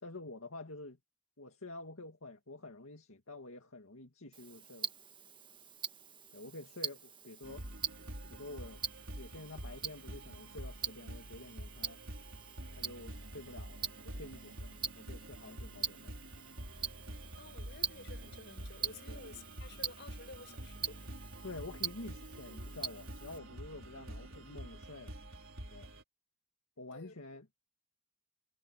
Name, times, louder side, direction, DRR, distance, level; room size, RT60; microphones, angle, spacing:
voice 1, 0.0-1.0 1.4-4.9 6.3-7.6 8.3-8.8 9.1-12.0 12.8-16.2 19.1-19.2 21.4-25.1 25.7-25.9 26.8-27.6, left 2 dB, 75° left, 2.2 m, -49 dB
Tick-tock, 4.3-23.4, right 6 dB, 25° right, 1.5 m, -44 dB
sound 1, 7.4-26.0, right 1 dB, 65° right, 5.5 m, -47 dB
voice 2, 17.4-21.1 26.9-27.2, left 3 dB, 55° left, 5.6 m, -52 dB
head